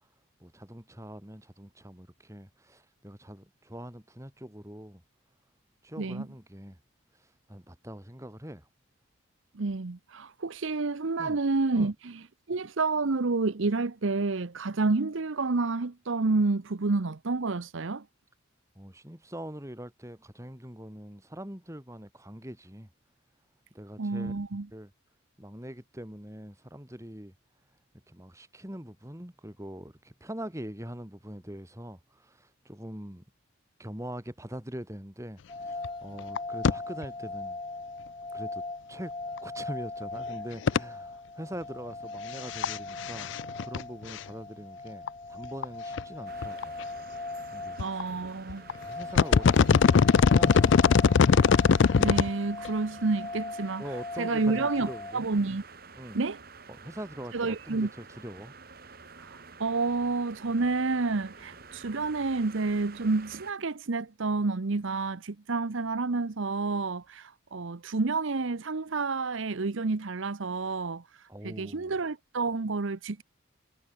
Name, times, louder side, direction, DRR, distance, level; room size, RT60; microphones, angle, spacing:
voice 1, 0.4-5.0 5.8-6.8 7.1-8.7 11.2-11.4 11.7-11.9 18.7-22.9 23.7-24.3 24.7-24.9 25.4-27.3 28.1-33.2 33.8-37.6 38.3-38.6 38.9-39.1 39.4-43.3 43.6-46.7 47.5-48.0 48.8-51.0 53.8-55.3 56.0-56.2 56.7-58.5 71.3-71.9, equal, 15° right, 2.4 m, -43 dB
voice 2, 9.5-12.1 12.5-18.0 24.0-24.7 47.8-48.7 52.0-53.8 54.2-55.6 56.1-56.4 57.3-57.9 59.2-73.2, right 3 dB, 65° right, 0.8 m, -29 dB
sound 1, 35.5-55.1, left 2 dB, 25° left, 1.5 m, -40 dB
sound 2, 35.8-35.9 36.2-36.4 36.6-36.7 37.0-37.1 39.4-39.5 40.7-40.8 42.4-42.8 43.0-43.8 44.2-44.3 45.1-45.2 45.6-45.7 46.0-46.1 46.4-46.8 47.8-48.0 48.5-48.7 49.0-52.3 52.6-52.7, left 5 dB, 60° left, 0.4 m, -21 dB
sound 3, 46.3-63.5, right 4 dB, 45° right, 2.5 m, -50 dB
head